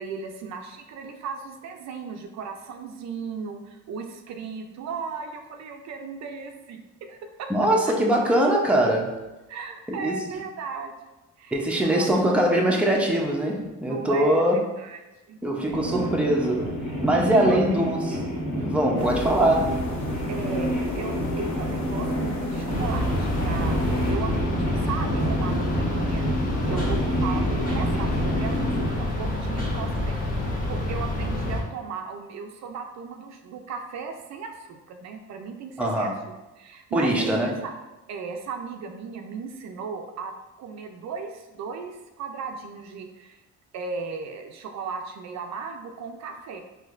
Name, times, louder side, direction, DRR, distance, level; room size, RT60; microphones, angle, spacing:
voice 1, 0.0-7.5 7.8-7.9 9.5-10.9 11.4-12.4 13.9-15.0 15.3-15.4 15.7-15.9 17.3-17.6 19.0-19.2 20.3-23.8 24.1-26.3 26.6-36.1 36.6-37.7 38.1-40.3 40.6-43.4 43.7-46.6, right 5 dB, 65° right, 4 dB, 0.4 m, -36 dB
voice 2, 7.5-9.2 9.9-10.2 11.5-14.6 15.4-16.7 17.0-19.8 35.8-36.2 36.9-37.5, right 1 dB, 5° right, -1 dB, 0.6 m, -22 dB
sound 1, 15.7-28.9, equal, 45° left, 1.5 m, -28 dB
sound 2, 19.0-24.1, left 2 dB, 65° left, 0.9 m, -35 dB
sound 3, 22.7-31.6, left 1 dB, 30° left, 1.1 m, -28 dB
4.2 x 2.8 x 2.5 m, 1.0 s
cardioid pair, 90°, 30 cm